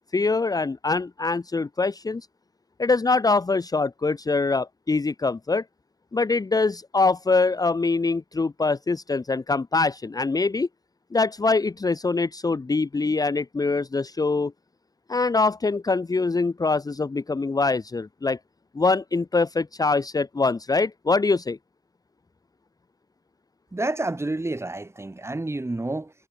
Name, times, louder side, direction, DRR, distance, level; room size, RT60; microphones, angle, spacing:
voice 1, 0.1-2.3 2.8-5.6 6.1-10.7 11.1-14.5 15.1-18.4 18.7-21.6, left 3 dB, 25° left, 0.9 m, -24 dB
voice 2, 23.7-26.1, right 2 dB, 20° right, 3.2 m, -29 dB
cardioid pair, 65°, 14 cm